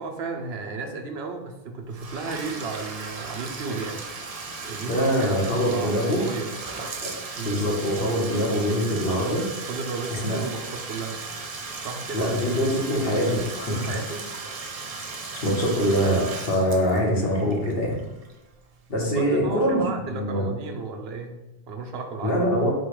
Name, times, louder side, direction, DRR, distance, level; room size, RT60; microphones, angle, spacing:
voice 1, 0.0-4.0 4.6-6.6 7.3-7.6 9.6-11.2 11.8-12.5 13.7-14.2 19.1-22.3, right 4 dB, 75° right, 3 dB, 0.9 m, -34 dB
Bathtub (filling or washing), 1.9-18.6, right 4 dB, 50° right, 0.5 m, -36 dB
voice 2, 4.8-6.2 7.0-7.1 7.4-9.4 10.1-10.4 12.1-14.0 15.3-18.0 18.9-20.5 22.2-22.7, equal, 65° left, -3 dB, 1.3 m, -24 dB
4.4 x 2.3 x 4.7 m, 0.97 s
omnidirectional pair, 1.1 m